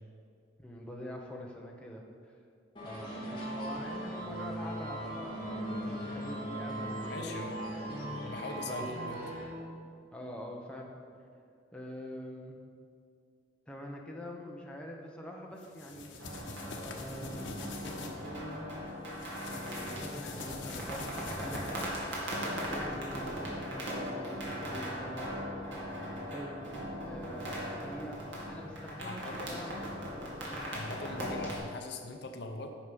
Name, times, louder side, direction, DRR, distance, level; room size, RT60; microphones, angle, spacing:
voice 1, 0.6-2.4 2.8-7.2 8.0-8.2 8.7-9.0 10.1-10.9 11.7-12.6 13.7-16.1 16.6-18.7 19.5-21.7 22.2-22.4 22.7-25.5 26.3-26.6 27.0-28.2 28.5-30.0 30.5-30.7, equal, 5° left, -1 dB, 1.0 m, -45 dB
sound 1, 2.8-9.4, right 1 dB, 25° left, 2.4 m, -38 dB
voice 2, 7.1-7.6 8.2-9.2 29.0-29.6 30.7-32.8, left 2 dB, 60° left, 5 dB, 0.7 m, -41 dB
sound 2, 15.6-18.1 19.1-22.3, left 3 dB, 75° left, 1.1 m, -44 dB
sound 3, 16.2-31.6, equal, 75° right, 2.2 m, -39 dB
10.0 x 6.1 x 5.3 m, 2.3 s
head